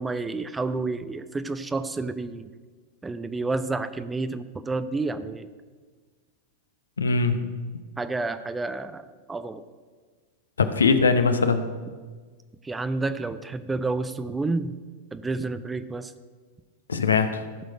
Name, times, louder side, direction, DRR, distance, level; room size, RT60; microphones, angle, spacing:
voice 1, 0.0-2.4 3.0-5.5 8.0-9.6 12.6-14.8 15.1-16.1, right 3 dB, 10° right, 12 dB, 0.5 m, -30 dB
voice 2, 7.0-7.4 10.6-11.6 16.9-17.4, left 4 dB, 70° left, 9 dB, 0.8 m, -21 dB
15.0 x 6.5 x 5.2 m, 1.5 s
figure-of-eight pair, 90°, 0 cm